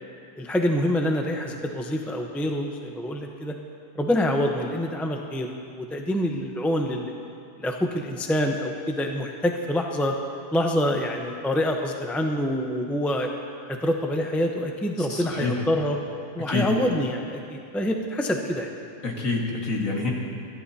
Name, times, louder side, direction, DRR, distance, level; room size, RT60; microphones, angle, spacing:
voice 1, 0.4-3.6 3.9-7.1 7.6-10.1 10.5-13.3 13.7-16.0 16.3-18.7, left 1 dB, ahead, 2 dB, 0.5 m, -26 dB
voice 2, 15.1-15.6 16.5-16.7 19.0-20.1, left 3 dB, 60° left, -2 dB, 2.3 m, -27 dB
22.5 x 14.5 x 2.8 m, 2.4 s
omnidirectional pair, 1.6 m